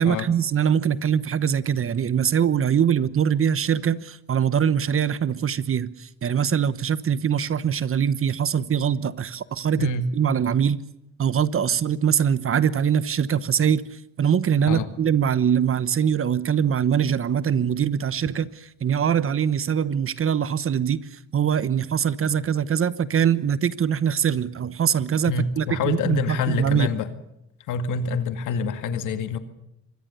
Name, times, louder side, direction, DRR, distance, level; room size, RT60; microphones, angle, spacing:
voice 1, 0.0-10.8 11.2-26.9, right 8 dB, 45° right, 1.1 m, -23 dB
voice 2, 25.3-27.1 27.7-29.4, left 5 dB, 90° left, 2.1 m, -26 dB
25.0 x 21.0 x 6.9 m
cardioid pair, 90°, 30 cm